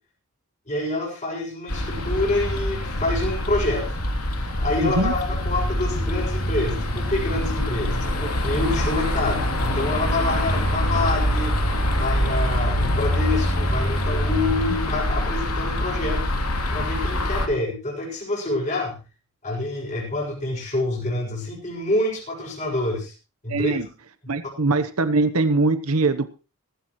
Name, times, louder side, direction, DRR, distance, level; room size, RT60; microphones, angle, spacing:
voice 1, 0.7-4.0 4.3-16.3 16.7-19.0 19.4-23.1 23.4-23.8 24.2-24.3, left 2 dB, 35° left, -2 dB, 6.5 m, -27 dB
sound 1, 1.7-17.5, left 1 dB, 90° left, 3.1 m, -24 dB
voice 2, 4.8-5.1 23.5-23.9 24.3-26.3, right 3 dB, 80° right, 11 dB, 1.0 m, -22 dB
17.0 x 16.0 x 3.1 m, 0.32 s
head